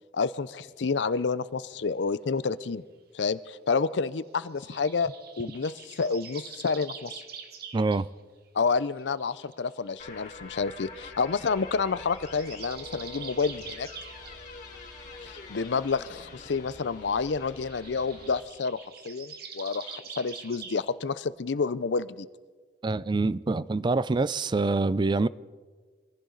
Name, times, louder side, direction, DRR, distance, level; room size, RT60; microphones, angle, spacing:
voice 1, 0.1-2.8 3.1-5.1 5.4-7.2 8.5-13.9 15.2-22.3, left 4 dB, 75° left, 0.6 m, -29 dB
sound 1, 4.6-8.0 8.6-9.7 10.7-10.8 12.1-14.4 17.6-20.8, right 6 dB, 60° right, 1.4 m, -45 dB
voice 2, 7.7-8.1 22.8-25.3, right 3 dB, 25° right, 0.4 m, -25 dB
sound 2, 10.0-18.4, left 3 dB, 50° left, 3.0 m, -45 dB
24.0 x 15.5 x 3.9 m
head